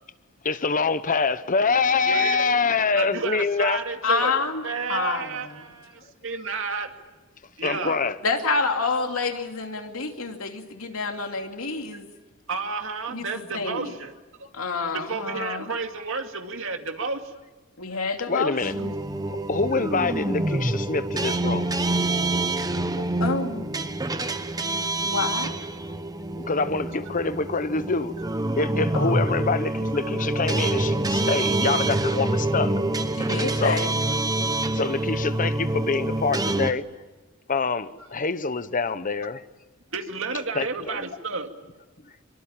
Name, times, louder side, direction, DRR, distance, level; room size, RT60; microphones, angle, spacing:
voice 1, 0.4-3.8 7.6-8.2 18.3-18.7 19.3-21.7 26.4-28.1 28.6-32.7 33.5-33.8 34.7-36.8 37.5-39.4 40.5-41.0, left 4 dB, 40° left, 1.0 m, -25 dB
voice 2, 2.0-2.5 3.0-4.3 4.6-6.9 7.6-8.0 12.5-14.1 14.9-17.3 18.5-18.6 39.9-41.5, right 4 dB, 65° right, 2.4 m, -31 dB
voice 3, 4.0-5.6 8.2-12.0 13.1-13.2 13.5-13.9 14.5-15.7 17.8-18.9 23.0-23.6 25.0-25.6 28.9-29.2 33.2-34.0, left 4 dB, 85° left, 2.7 m, -28 dB
sound 1, 18.6-36.7, right 2 dB, 20° right, 1.0 m, -26 dB
24.0 x 24.0 x 8.9 m
head